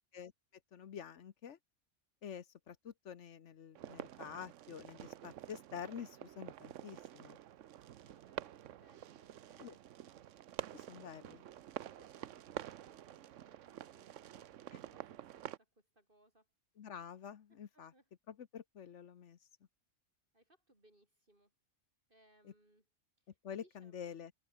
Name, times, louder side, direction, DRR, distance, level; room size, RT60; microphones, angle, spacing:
voice 1, 0.7-1.6 2.2-7.4 9.6-9.8 10.7-11.4 14.7-14.8 16.8-17.9 18.3-19.4 22.4-22.5 23.4-24.3, left 8 dB, 70° left, 1.3 m, -48 dB
sound 1, 3.8-15.6, right 11 dB, 75° right, 1.0 m, -49 dB
voice 2, 8.0-9.8 12.0-16.5 17.5-18.1 20.3-21.5 22.1-22.8 23.2-24.2, right 1 dB, 45° right, 6.5 m, -70 dB
omnidirectional pair, 1.3 m